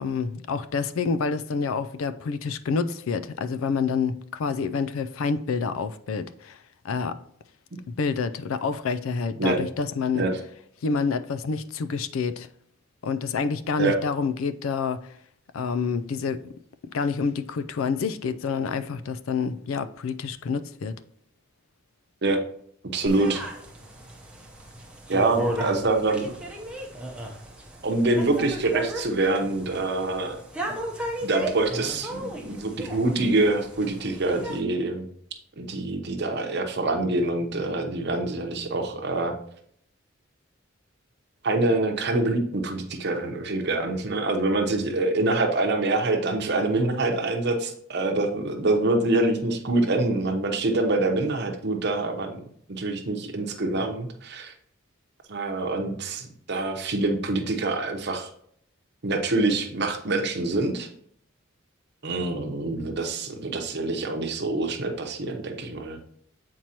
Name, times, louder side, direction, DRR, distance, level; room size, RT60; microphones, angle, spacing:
voice 1, 0.0-6.6 6.8-7.2 7.9-10.3 10.8-12.5 13.0-15.1 15.5-16.4 16.9-21.0, left 5 dB, 75° left, 0.4 m, -28 dB
voice 2, 22.9-23.4 25.1-26.4 27.8-30.4 30.6-30.7 31.2-35.1 35.6-39.3 41.4-52.4 52.7-54.5 55.3-58.3 59.0-60.9 62.0-66.0, right 2 dB, 55° right, 0.9 m, -25 dB
sound 1, 23.1-34.6, right 1 dB, 5° right, 0.7 m, -35 dB
7.5 x 4.5 x 2.9 m
head